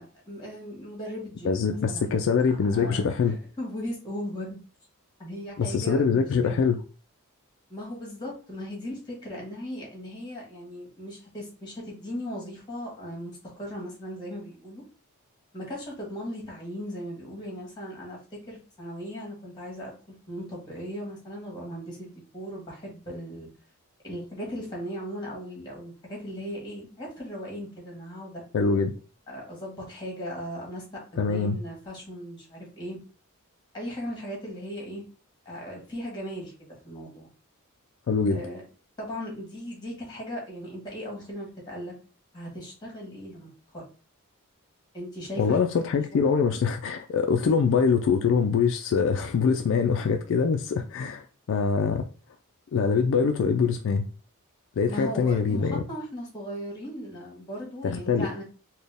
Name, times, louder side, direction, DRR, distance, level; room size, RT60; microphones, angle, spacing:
voice 1, 0.0-2.2 2.7-4.6 5.2-6.6 7.7-14.8 15.5-19.9 20.3-23.5 24.0-28.4 29.3-30.8 31.1-33.0 33.7-35.0 35.4-37.3 38.2-38.6 39.0-41.9 42.3-43.8 44.9-45.9 47.4-47.6 54.9-58.4, equal, 20° left, -2 dB, 1.5 m, -38 dB
voice 2, 1.4-3.4 5.6-6.8 28.5-28.9 31.2-31.6 38.1-38.4 45.4-51.2 51.5-52.0 52.7-54.1 54.8-55.8 57.8-58.3, left 5 dB, 60° left, 5 dB, 0.3 m, -24 dB
4.1 x 2.2 x 3.4 m, 0.37 s
head